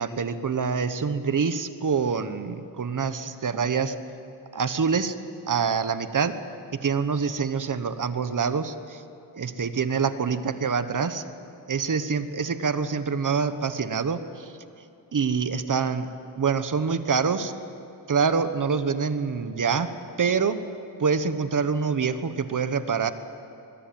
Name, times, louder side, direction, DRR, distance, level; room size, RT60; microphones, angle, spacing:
voice 1, 0.0-3.9 4.5-5.2 5.5-6.4 6.7-9.0 9.3-11.3 11.7-14.6 15.1-16.1 16.4-17.6 18.1-19.9 20.2-20.6 21.0-23.1, right 5 dB, 45° right, 11 dB, 1.3 m, -26 dB
24.5 x 22.0 x 9.0 m, 2.7 s
wide cardioid pair, 140°, 44 cm